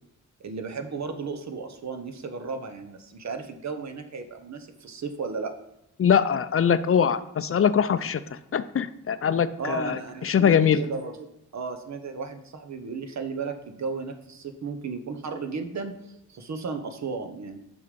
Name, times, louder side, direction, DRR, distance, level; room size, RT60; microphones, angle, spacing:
voice 1, 0.4-5.5 9.6-17.6, right 5 dB, 60° right, 7 dB, 1.1 m, -34 dB
voice 2, 6.0-8.2 8.5-10.8, left 7 dB, 45° left, 13 dB, 0.5 m, -22 dB
6.8 x 5.4 x 5.1 m, 0.83 s
cardioid pair, 65°, 32 cm